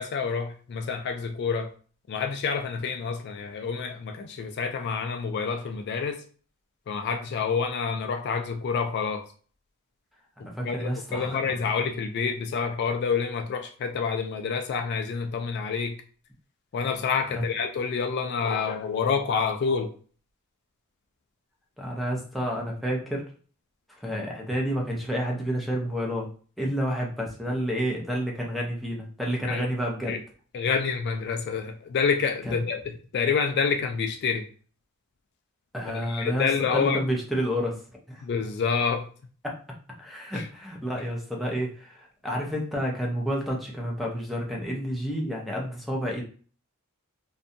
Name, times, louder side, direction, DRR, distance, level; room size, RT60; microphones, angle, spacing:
voice 1, 0.0-1.7 2.1-6.2 6.9-9.3 10.4-16.0 16.7-19.9 29.5-29.6 30.1-30.2 30.5-34.4 35.9-37.0 38.2-39.1 40.3-40.5, left 5 dB, 50° left, 0.3 m, -28 dB
voice 2, 10.4-11.6 17.3-17.4 21.8-23.3 24.0-26.3 26.6-30.2 32.5-32.6 35.7-37.8 38.1-38.2 39.4-39.6 40.0-46.2, equal, ahead, 0.5 m, -30 dB
2.7 x 2.2 x 2.6 m
head